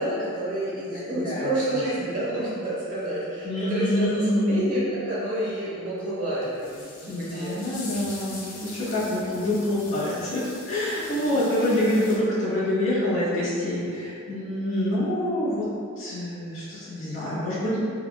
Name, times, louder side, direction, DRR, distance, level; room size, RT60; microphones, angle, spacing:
voice 1, 0.0-4.2 4.5-7.6, right 1 dB, 40° right, -8 dB, 0.9 m, -29 dB
voice 2, 0.9-1.8 3.4-4.6 7.1-15.7 16.0-17.8, left 1 dB, 65° left, -11 dB, 1.1 m, -26 dB
sound 1, 6.0-6.1 6.4-12.2, left 2 dB, 40° left, 0.4 m, -42 dB
3.5 x 2.3 x 2.2 m, 2.3 s
head